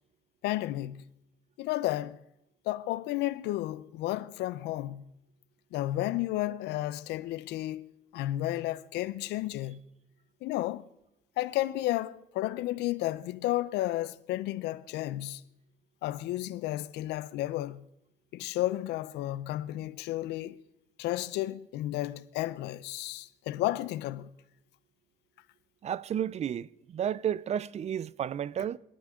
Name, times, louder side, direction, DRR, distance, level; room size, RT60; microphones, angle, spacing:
voice 1, 0.4-1.0 1.6-2.2 2.7-5.0 5.7-9.8 10.4-10.9 11.4-15.4 16.0-17.8 18.3-20.6 21.0-24.3, left 15 dB, 85° left, 0.7 m, -32 dB
voice 2, 25.8-28.8, right 9 dB, 40° right, 0.4 m, -32 dB
26.5 x 12.5 x 3.7 m
cardioid pair, 110°, 17 cm